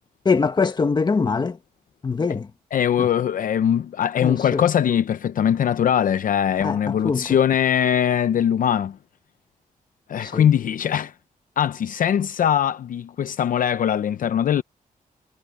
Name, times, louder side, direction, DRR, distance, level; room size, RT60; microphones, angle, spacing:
voice 1, 0.2-1.6 2.0-2.5 4.2-4.6 6.6-7.2 10.2-10.4, left 4 dB, 30° left, 1.5 m, -22 dB
voice 2, 2.7-9.0 10.1-11.1 11.6-14.6, left 9 dB, 65° left, 0.6 m, -21 dB
wide cardioid pair, 170°, 15 cm